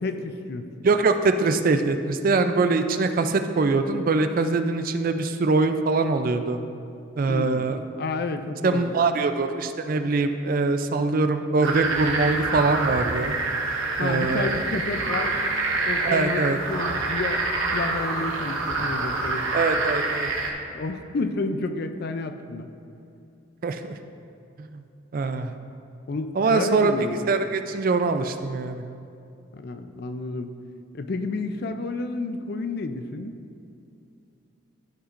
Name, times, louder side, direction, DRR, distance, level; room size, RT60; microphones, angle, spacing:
voice 1, 0.0-0.9 7.3-7.7 8.0-8.9 14.0-15.4 15.8-17.4 17.7-19.4 20.7-22.7 26.1-27.4 29.5-30.5 30.9-33.4, left 3 dB, 50° left, 8 dB, 0.4 m, -30 dB
voice 2, 0.8-6.6 7.2-7.8 8.6-13.3 14.0-14.6 16.0-16.6 19.5-20.3 23.6-23.9 24.6-24.8 25.1-25.5 26.4-26.9 27.3-28.8, right 3 dB, 45° right, 8 dB, 0.4 m, -23 dB
sound 1, 11.6-20.5, right 3 dB, 75° right, 1.0 m, -27 dB
14.0 x 5.8 x 2.5 m, 2.6 s
head